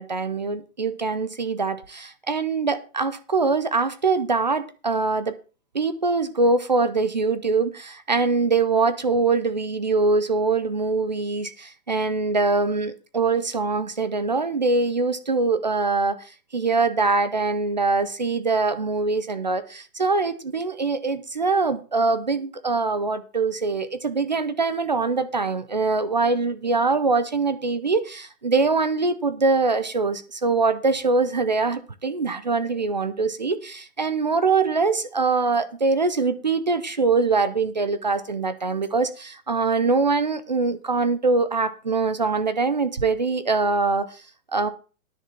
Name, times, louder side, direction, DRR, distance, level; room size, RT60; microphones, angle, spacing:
voice 1, 0.0-5.4 5.7-16.2 16.5-44.2 44.5-44.7, right 4 dB, 30° right, 0.5 m, -23 dB
10.5 x 6.8 x 5.7 m
hypercardioid pair, 175°, 45 cm